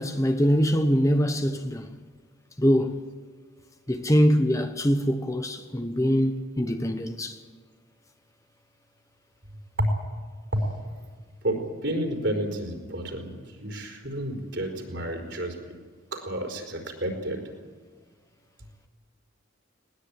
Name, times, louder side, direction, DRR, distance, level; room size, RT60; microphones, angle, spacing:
voice 1, 0.0-1.9 2.6-3.1 3.9-7.4, equal, 15° left, 1.1 m, -23 dB
voice 2, 11.4-15.6 16.1-17.4, right 1 dB, 60° right, 4.5 m, -30 dB
20.5 x 20.0 x 9.0 m
head